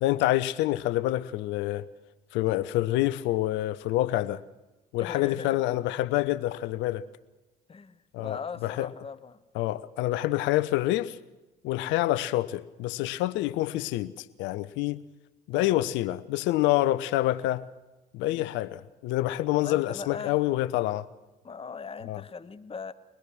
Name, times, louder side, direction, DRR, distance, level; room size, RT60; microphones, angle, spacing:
voice 1, 0.0-1.9 2.3-4.4 4.9-7.0 8.1-8.9 9.5-11.2 11.6-15.0 15.5-17.7 18.1-21.1 22.0-22.2, left 16 dB, 60° left, 0.9 m, -27 dB
voice 2, 5.0-5.8 7.7-9.4 11.7-12.0 15.5-15.9 18.2-18.5 19.6-20.3 21.4-22.9, left 5 dB, 25° left, 1.2 m, -40 dB
23.5 x 20.0 x 6.2 m
hypercardioid pair, 60°, 21 cm